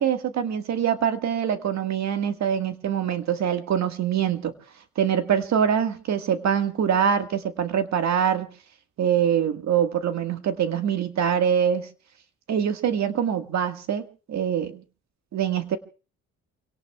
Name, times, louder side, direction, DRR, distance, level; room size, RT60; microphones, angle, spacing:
voice 1, 0.0-4.5 4.9-8.5 9.0-11.9 12.5-14.0 14.3-14.7 15.3-15.8, right 8 dB, 65° right, 7 dB, 1.7 m, -24 dB
28.5 x 18.0 x 2.3 m, 0.36 s
cardioid pair, 90°, 30 cm